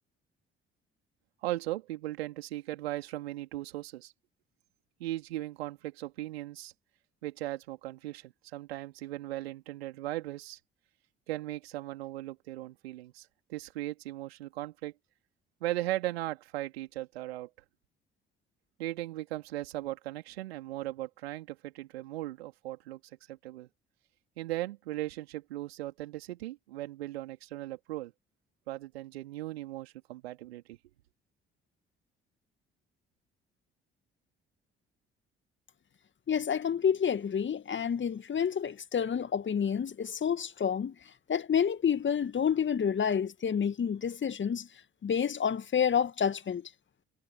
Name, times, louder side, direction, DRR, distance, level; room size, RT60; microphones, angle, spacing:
voice 1, 1.4-4.1 5.0-6.7 7.2-10.6 11.3-14.9 15.6-17.5 18.8-23.0 23.3-23.7 24.4-28.1 28.7-30.8, right 16 dB, 75° right, 3.9 m, -38 dB
voice 2, 36.3-40.9 41.3-44.7 45.0-46.7, left 7 dB, 35° left, 2.1 m, -29 dB
figure-of-eight pair, 45°, 31 cm